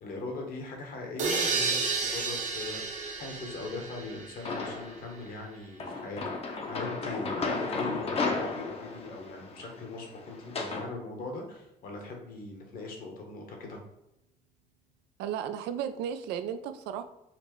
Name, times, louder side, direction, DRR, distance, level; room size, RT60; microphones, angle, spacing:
voice 1, 0.0-13.8, left 3 dB, 60° left, 1 dB, 1.0 m, -40 dB
sound 1, 1.2-4.9, right 4 dB, 45° right, 0.7 m, -32 dB
sound 2, 4.5-5.1 5.8-10.9, left 3 dB, 35° left, 0.6 m, -34 dB
voice 2, 15.2-17.0, right 9 dB, 85° right, 9 dB, 0.4 m, -34 dB
4.2 x 2.5 x 3.0 m, 0.87 s
cardioid pair, 110°, 17 cm